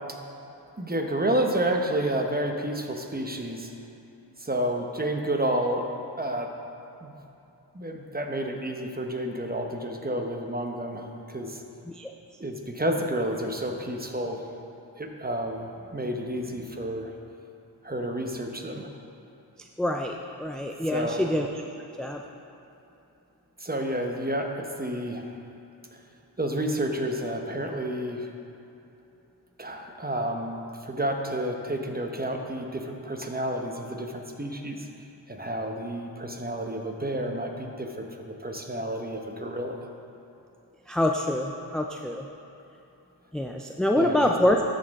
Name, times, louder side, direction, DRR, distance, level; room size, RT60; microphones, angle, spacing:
voice 1, 0.8-3.7 4.4-5.9 6.2-6.5 7.0-7.1 7.7-11.6 12.4-14.4 15.0-17.1 17.8-18.9 20.9-21.3 23.6-25.3 25.9-26.0 26.4-28.3 29.6-34.9 35.3-39.8 44.0-44.3, right 1 dB, 20° right, 3 dB, 0.9 m, -30 dB
voice 2, 19.6-21.6 22.0-22.2 40.9-42.3 43.3-44.6, left 1 dB, ahead, 1 dB, 0.3 m, -26 dB
13.5 x 5.2 x 3.6 m, 2.9 s
wide cardioid pair, 45°, 43 cm